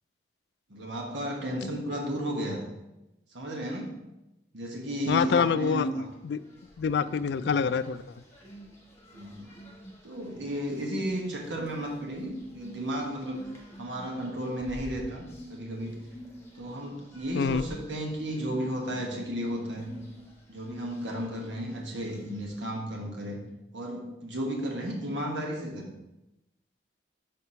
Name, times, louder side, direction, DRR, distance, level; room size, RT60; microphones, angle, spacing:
voice 1, 0.7-2.7 3.3-4.0 4.5-6.1 7.4-7.5 9.1-9.5 10.0-13.4 13.8-16.0 16.5-19.9 20.5-23.4 23.7-25.9, equal, 85° right, 0 dB, 1.4 m, -33 dB
voice 2, 5.1-5.9 6.2-6.4 6.8-8.0 17.3-17.6, left 6 dB, 70° left, 14 dB, 0.3 m, -26 dB
sound 1, 6.1-22.6, equal, 15° left, 1.3 m, -49 dB
5.9 x 4.5 x 5.5 m, 0.96 s
head